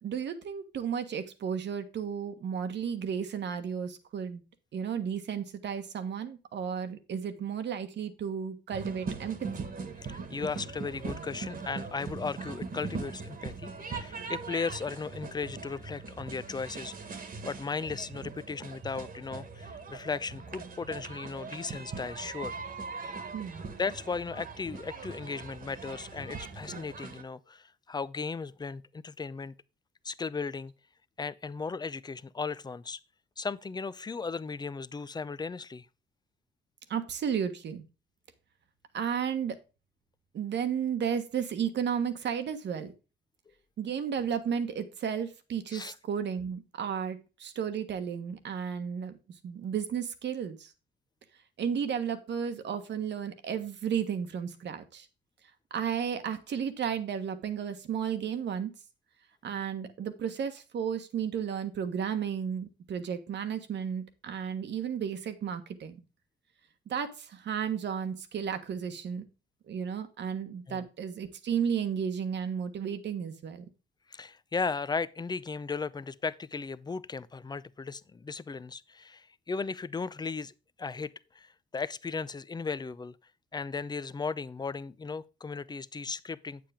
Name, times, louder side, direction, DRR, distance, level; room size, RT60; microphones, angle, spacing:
voice 1, 0.0-4.4 4.7-9.7 23.3-23.7 36.9-37.8 38.9-39.6 40.3-42.9 43.8-49.1 49.4-50.7 51.6-55.1 55.7-58.7 59.4-66.0 66.9-69.3 69.7-73.6, right 7 dB, 60° right, 1.4 m, -33 dB
sound 1, 8.7-27.2, right 4 dB, 45° right, 1.7 m, -41 dB
voice 2, 10.0-22.6 23.8-29.5 30.0-30.7 31.2-33.0 33.4-35.9 45.7-45.9 70.7-70.9 74.1-80.5 80.8-83.2 83.5-86.6, left 4 dB, 20° left, 0.6 m, -36 dB
8.6 x 7.6 x 3.6 m
cardioid pair, 90°, 20 cm